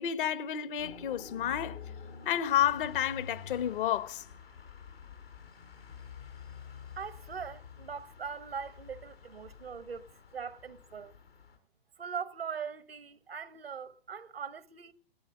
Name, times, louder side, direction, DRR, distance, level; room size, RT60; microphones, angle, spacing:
voice 1, 0.0-1.8 2.2-4.2, left 10 dB, 60° left, 1.2 m, -30 dB
sound 1, 0.8-11.6, left 6 dB, 90° left, 3.8 m, -49 dB
voice 2, 7.0-10.0 10.3-11.2 12.0-14.9, right 6 dB, 90° right, 1.1 m, -41 dB
16.5 x 12.5 x 5.3 m
hypercardioid pair, 105°, 29 cm